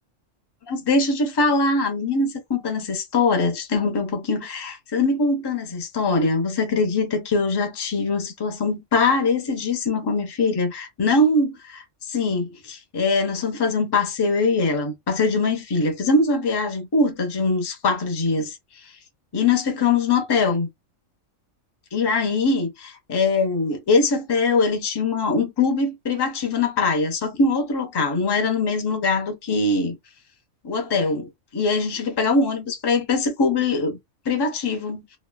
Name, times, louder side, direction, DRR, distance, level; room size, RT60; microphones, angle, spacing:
voice 1, 0.7-18.6 19.3-20.7 21.9-30.0 30.6-34.0 34.3-35.0, left 3 dB, 30° left, 0.5 m, -22 dB
3.0 x 2.2 x 2.2 m
omnidirectional pair, 1.3 m